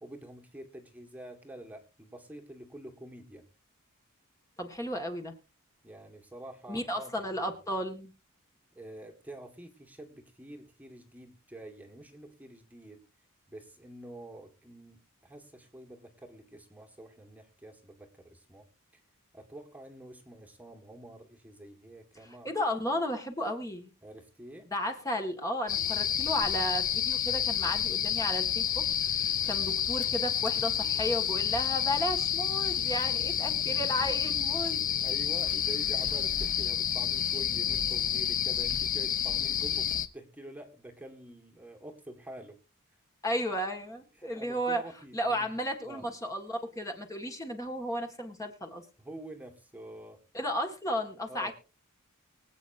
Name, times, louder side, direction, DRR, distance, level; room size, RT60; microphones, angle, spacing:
voice 1, 0.0-3.4 5.8-7.3 8.8-13.0 13.5-18.6 19.3-22.5 24.0-24.7 35.0-42.6 44.2-45.5 45.8-46.0 49.0-50.2 51.3-51.5, right 1 dB, 5° right, 2 dB, 1.7 m, -47 dB
voice 2, 4.6-5.3 6.7-8.1 22.2-23.9 24.7-34.8 43.2-44.8 45.1-48.8 50.3-51.5, equal, 15° left, 4 dB, 1.8 m, -34 dB
sound 1, 25.7-40.1, left 9 dB, 40° left, 0.8 m, -29 dB
24.5 x 8.3 x 2.7 m, 0.33 s
head